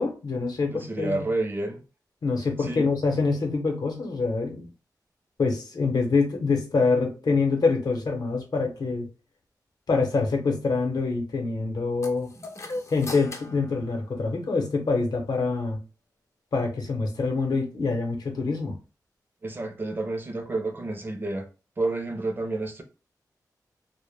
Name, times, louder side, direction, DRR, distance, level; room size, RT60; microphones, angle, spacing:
voice 1, 0.0-1.2 2.2-4.7 5.4-9.1 9.9-12.3 12.9-15.8 16.5-18.7, left 4 dB, 70° left, 0.7 m, -25 dB
voice 2, 0.7-1.8 2.6-2.8 12.4-12.5 19.4-21.5 21.8-22.8, right 2 dB, 30° right, 0.4 m, -30 dB
sound 1, 12.0-14.7, left 2 dB, 45° left, 0.4 m, -39 dB
2.1 x 2.1 x 3.1 m
wide cardioid pair, 140°, 7 cm